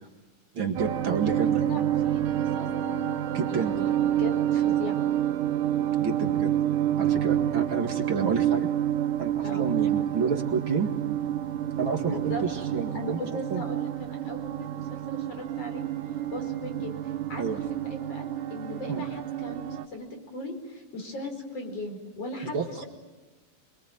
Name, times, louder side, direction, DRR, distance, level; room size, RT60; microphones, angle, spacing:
voice 1, 0.5-1.6 3.3-3.8 6.0-6.5 7.0-8.7 9.2-10.9 11.8-13.2 13.5-13.6 17.4-17.6 18.9-19.0 22.5-22.9, right 5 dB, 40° right, 3 dB, 2.1 m, -29 dB
sound 1, 0.7-19.8, right 11 dB, 70° right, 2.4 m, -28 dB
voice 2, 1.3-2.7 3.5-5.0 9.4-9.7 12.0-12.5 12.9-15.9 16.3-16.9 17.3-17.5 17.8-22.9, left 2 dB, 40° left, 4 dB, 5.8 m, -38 dB
26.0 x 23.5 x 9.2 m, 1.2 s
omnidirectional pair, 4.2 m